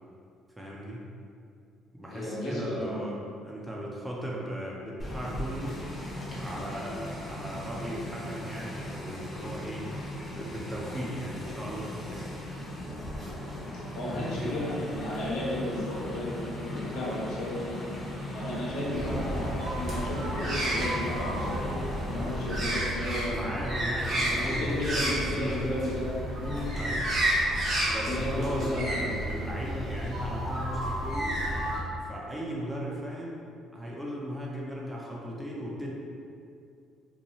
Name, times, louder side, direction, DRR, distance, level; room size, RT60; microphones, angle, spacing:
voice 1, 0.6-1.0 1.9-5.8 6.3-9.9 10.3-12.3 14.1-14.5 18.9-19.3 22.1-22.5 23.3-25.7 26.8-27.1 27.9-31.4 32.0-33.5 33.7-35.9, equal, 10° right, -4 dB, 0.5 m, -37 dB
voice 2, 2.1-3.1 13.9-19.5 19.8-23.5 24.2-26.7 28.1-29.1, left 1 dB, 75° left, -7 dB, 0.8 m, -34 dB
sound 1, 5.0-22.6, left 1 dB, 30° left, 0.8 m, -38 dB
sound 2, 18.9-31.8, right 1 dB, 50° right, 0.9 m, -31 dB
2.7 x 2.2 x 2.9 m, 2.4 s
supercardioid pair, 85°, 0 cm